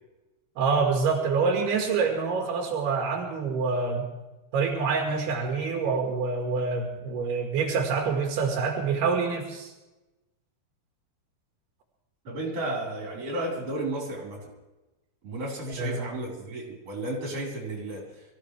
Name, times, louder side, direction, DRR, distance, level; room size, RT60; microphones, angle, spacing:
voice 1, 0.6-4.1 4.5-9.7 15.8-16.1, right 5 dB, 85° right, 1 dB, 3.9 m, -26 dB
voice 2, 12.3-14.5 15.2-18.2, right 1 dB, 40° right, -2 dB, 5.3 m, -33 dB
24.0 x 16.0 x 3.4 m, 1.1 s
omnidirectional pair, 4.5 m